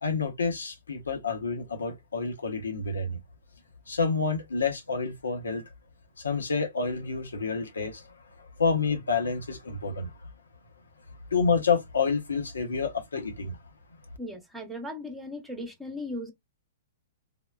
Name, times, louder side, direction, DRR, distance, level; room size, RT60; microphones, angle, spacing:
voice 1, 0.0-3.2 3.9-5.6 6.2-10.3 11.3-13.6, left 4 dB, 75° left, 0.8 m, -29 dB
voice 2, 14.2-16.3, left 1 dB, 5° right, 0.9 m, -37 dB
3.6 x 2.1 x 2.3 m
figure-of-eight pair, 115°, 0 cm